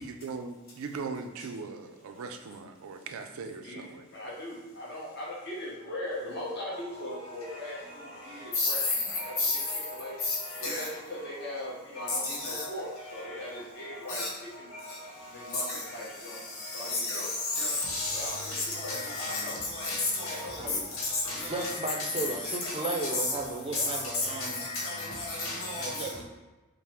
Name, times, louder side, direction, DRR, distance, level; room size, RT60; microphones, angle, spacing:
voice 1, 0.0-4.0, right 4 dB, 90° right, 6 dB, 0.4 m, -39 dB
voice 2, 3.6-8.8 9.1-9.6 9.9-10.2 10.6-14.2 14.6-14.7 15.3-17.3 18.1-19.6 19.8-20.9, left 1 dB, 50° left, -4 dB, 0.9 m, -40 dB
voice 3, 9.2-9.5 10.6-10.8 12.0-12.7 14.1-14.3 16.9-17.3 17.6-19.4 19.8-20.4 21.0-21.4 22.6-22.7 23.7-23.8 24.4-24.5 24.8-25.9, left 2 dB, 85° left, -3 dB, 1.3 m, -31 dB
voice 4, 20.6-20.9 21.3-24.6 25.7-26.2, right 2 dB, 25° right, 2 dB, 0.4 m, -35 dB
5.5 x 2.0 x 3.5 m, 1.1 s
head